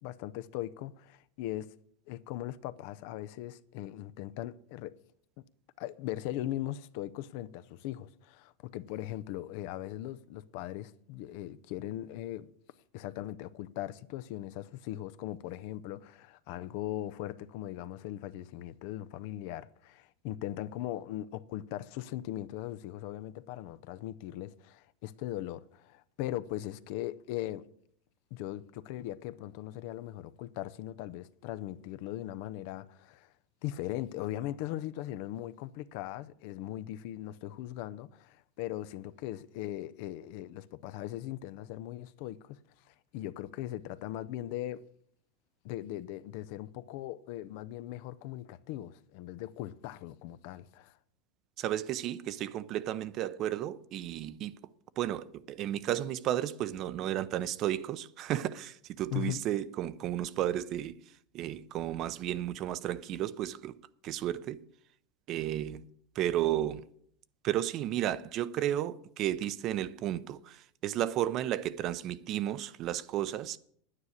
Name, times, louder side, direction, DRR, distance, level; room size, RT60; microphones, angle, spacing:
voice 1, 0.0-1.7 2.1-4.9 5.8-12.5 12.9-27.6 28.3-33.3 33.6-42.6 43.1-44.8 45.6-50.9 59.1-59.4, left 14 dB, 60° left, 0.5 m, -39 dB
voice 2, 51.6-54.5 55.0-60.9 61.3-63.7 64.0-64.6 65.3-65.8 66.2-66.8 67.4-70.6 70.8-73.6, right 12 dB, 40° right, 0.6 m, -33 dB
9.7 x 9.7 x 6.4 m
supercardioid pair, 140°, 0 cm